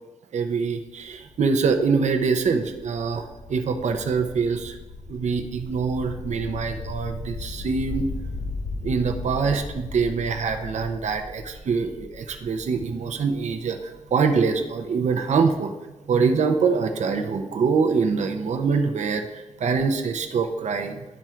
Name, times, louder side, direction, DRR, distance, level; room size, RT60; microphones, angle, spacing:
voice 1, 0.3-4.8 5.1-8.1 8.8-15.7 16.1-21.1, right 5 dB, 65° right, 5 dB, 0.6 m, -24 dB
sound 1, 0.8-14.6, left 3 dB, 55° left, 1.7 m, -37 dB
10.5 x 3.6 x 4.4 m, 1.1 s
wide cardioid pair, 125°, 13 cm